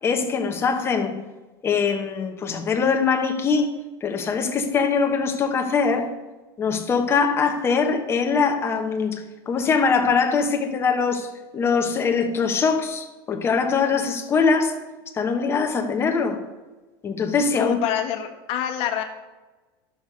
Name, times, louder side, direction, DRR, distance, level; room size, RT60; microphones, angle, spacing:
voice 1, 0.0-1.2 1.6-3.7 4.0-6.1 6.6-11.3 11.5-14.7 15.1-16.4 17.0-17.8, left 5 dB, 20° left, 4 dB, 1.1 m, -22 dB
voice 2, 17.6-19.0, left 10 dB, 45° left, 4 dB, 1.4 m, -26 dB
11.0 x 6.6 x 5.4 m, 1.2 s
supercardioid pair, 155°, 13 cm